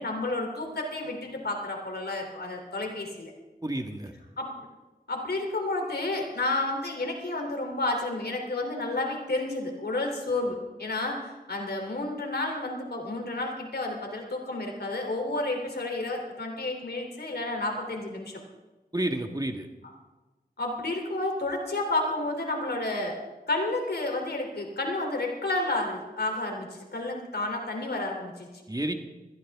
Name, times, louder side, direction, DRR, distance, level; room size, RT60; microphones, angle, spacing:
voice 1, 0.0-3.3 4.4-4.7 5.1-18.4 20.6-23.2 23.5-28.6, left 2 dB, 80° left, 2 dB, 3.3 m, -31 dB
voice 2, 3.6-4.1 18.9-19.7 28.7-28.9, right 1 dB, 25° right, 5 dB, 1.7 m, -30 dB
21.0 x 15.0 x 3.6 m, 1.1 s
wide cardioid pair, 45°, 17 cm